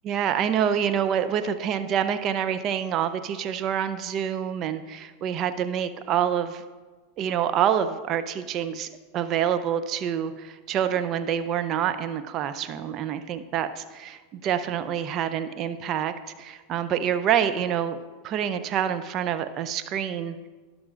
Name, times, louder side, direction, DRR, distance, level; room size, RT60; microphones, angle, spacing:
voice 1, 0.0-6.6 7.2-8.9 9.1-18.0 18.2-20.5, right 9 dB, 40° right, 10 dB, 0.6 m, -27 dB
16.5 x 6.2 x 2.5 m, 1.4 s
hypercardioid pair, 100°, 0 cm